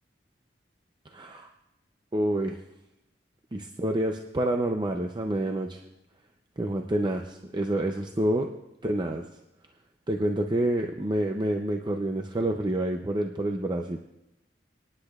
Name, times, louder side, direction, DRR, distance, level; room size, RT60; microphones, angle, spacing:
voice 1, 1.1-1.5 2.1-2.6 3.5-5.8 6.6-8.5 8.8-9.3 10.1-14.0, right 1 dB, 25° right, 3 dB, 0.5 m, -28 dB
29.5 x 9.9 x 2.4 m, 0.92 s
head